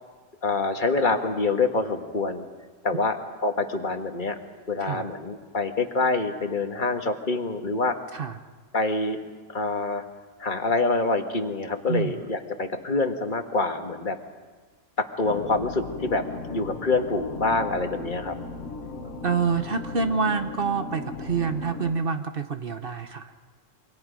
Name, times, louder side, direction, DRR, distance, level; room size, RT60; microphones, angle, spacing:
voice 1, 0.4-2.5 2.8-4.4 4.7-8.0 8.7-9.2 9.5-10.0 10.4-14.2 15.0-18.4, left 3 dB, 40° left, 5 dB, 1.6 m, -26 dB
sound 1, 15.2-21.9, left 3 dB, 90° left, 1.7 m, -37 dB
voice 2, 19.2-23.3, right 5 dB, 50° right, 8 dB, 1.0 m, -27 dB
28.0 x 24.5 x 5.2 m, 1.4 s
omnidirectional pair, 1.3 m